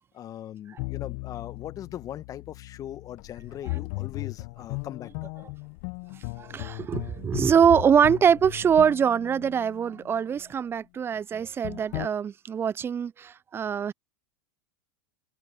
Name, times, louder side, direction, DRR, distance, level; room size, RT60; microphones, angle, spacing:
voice 1, 0.1-5.3, left 11 dB, 35° left, 2.0 m, -40 dB
sound 1, 0.8-10.2 11.6-12.1, left 28 dB, 55° left, 1.6 m, -37 dB
voice 2, 6.4-13.9, right 7 dB, 25° right, 0.6 m, -23 dB
open air
hypercardioid pair, 85°, 10 cm